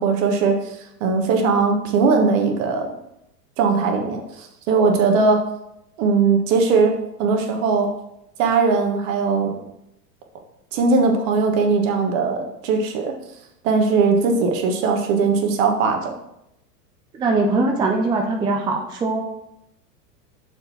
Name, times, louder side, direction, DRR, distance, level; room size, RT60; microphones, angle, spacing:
voice 1, 0.0-2.9 3.6-5.4 6.0-6.9 7.2-7.9 8.4-9.5 10.7-13.1 13.6-16.1, right 4 dB, 55° right, 4 dB, 1.4 m, -19 dB
voice 2, 17.1-19.2, right 3 dB, 10° right, 2 dB, 0.4 m, -21 dB
6.5 x 4.5 x 4.3 m, 0.82 s
hypercardioid pair, 95°, 48 cm